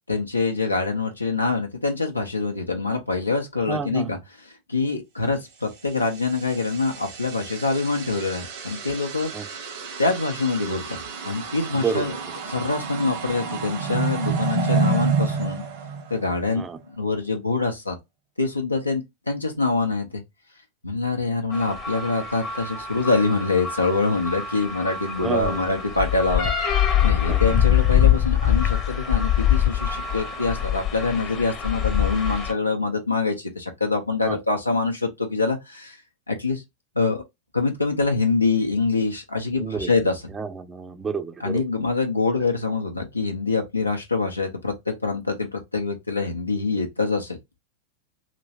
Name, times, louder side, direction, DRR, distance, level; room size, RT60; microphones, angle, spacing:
voice 1, 0.1-9.3 10.0-11.0 11.2-12.1 12.5-15.6 16.1-16.6 16.9-18.0 18.4-20.2 20.8-26.5 27.0-36.0 36.3-36.6 37.0-37.2 37.5-40.2 41.4-47.4, left 3 dB, 85° left, 0.6 m, -25 dB
voice 2, 3.7-4.1 9.3-9.5 11.7-12.0 16.6-16.8 25.2-25.7 27.3-27.4 34.2-34.4 39.6-39.9 40.3-41.6, right 5 dB, 15° right, 0.4 m, -29 dB
sound 1, 5.9-16.6, right 4 dB, 55° right, 1.1 m, -29 dB
sound 2, 21.5-32.5, left 10 dB, 30° left, 0.8 m, -24 dB
3.1 x 3.0 x 2.7 m
figure-of-eight pair, 90°, 0 cm